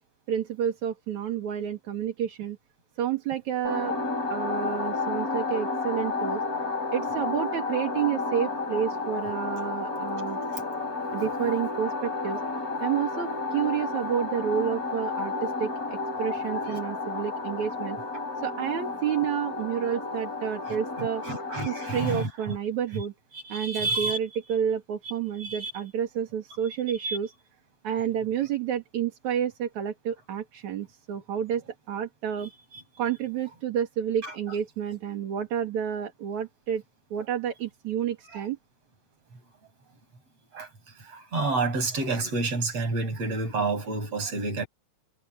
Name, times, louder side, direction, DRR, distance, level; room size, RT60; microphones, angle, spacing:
voice 1, 0.3-2.6 3.0-3.9 4.3-6.4 6.9-10.4 11.1-12.4 12.8-18.0 18.4-21.2 21.7-23.1 23.5-27.3 27.8-31.6 31.9-32.5 33.0-36.8 37.1-38.6, right 9 dB, 65° right, 3.6 m, -30 dB
sound 1, 3.6-22.2, left 3 dB, 25° left, 4.9 m, -31 dB
voice 2, 20.7-22.6 22.9-23.0 23.3-24.2 25.4-25.7 27.0-27.2 34.2-34.3 38.3-38.4 40.5-40.7 41.0-44.7, right 3 dB, 50° right, 8.4 m, -29 dB
omnidirectional pair, 3.5 m